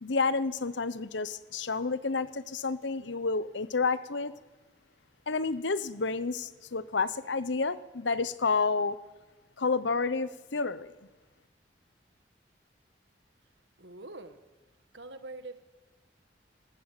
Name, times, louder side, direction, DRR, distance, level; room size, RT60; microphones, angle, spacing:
voice 1, 0.0-4.3 5.3-9.0 9.6-10.9, left 4 dB, 85° left, 16 dB, 0.9 m, -30 dB
voice 2, 13.8-14.4 14.9-15.6, right 2 dB, 80° right, 10 dB, 1.6 m, -44 dB
19.5 x 16.5 x 9.0 m, 1.2 s
head